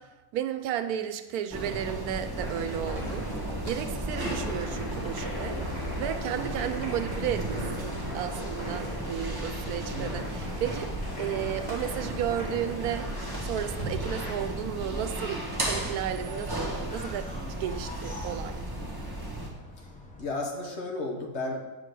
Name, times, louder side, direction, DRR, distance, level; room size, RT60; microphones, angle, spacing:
voice 1, 0.0-3.3 3.6-10.9 11.2-13.1 13.4-15.4 15.7-18.6, right 10 dB, 90° right, 9 dB, 1.1 m, -33 dB
sound 1, 1.5-19.5, right 1 dB, 15° right, 1.3 m, -35 dB
sound 2, 2.4-14.3, equal, 30° left, 1.6 m, -39 dB
voice 2, 7.5-7.8 9.9-10.3 19.8-19.9 20.2-21.6, left 2 dB, 50° left, 1 dB, 1.3 m, -34 dB
sound 3, 8.5-20.3, left 1 dB, 10° left, 0.5 m, -46 dB
7.8 x 3.8 x 6.5 m, 1.2 s
omnidirectional pair, 1.5 m